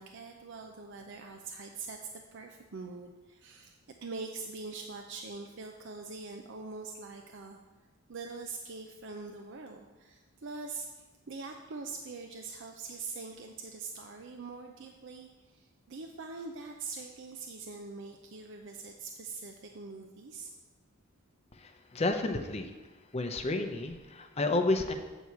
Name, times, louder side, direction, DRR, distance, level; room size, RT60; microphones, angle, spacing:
voice 1, 0.0-2.0 2.3-7.6 8.1-20.5, right 4 dB, 55° right, 3 dB, 0.5 m, -43 dB
voice 2, 21.5-22.7 23.1-24.9, left 2 dB, 30° left, 5 dB, 0.6 m, -31 dB
8.0 x 4.7 x 6.9 m, 1.2 s
head